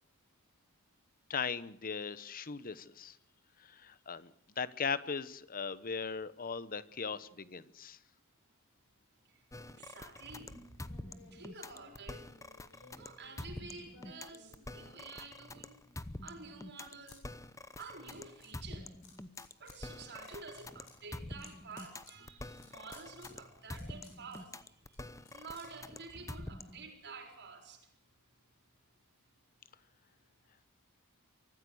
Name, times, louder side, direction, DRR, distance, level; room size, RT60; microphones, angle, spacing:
voice 1, 1.3-3.2 3.6-8.0, left 5 dB, 40° left, 16 dB, 1.0 m, -38 dB
voice 2, 9.3-10.5 11.3-12.3 13.0-15.8 16.2-17.3 17.8-18.9 19.6-25.0 25.3-27.9, right 4 dB, 50° right, 4 dB, 4.4 m, -50 dB
sound 1, 9.5-26.9, left 1 dB, 15° left, 0.9 m, -47 dB
sound 2, 10.2-15.3 15.8-17.2 17.4-18.5 19.0-19.8 20.1-26.2, left 3 dB, 60° left, 8.0 m, -60 dB
24.0 x 14.5 x 8.0 m, 0.74 s
head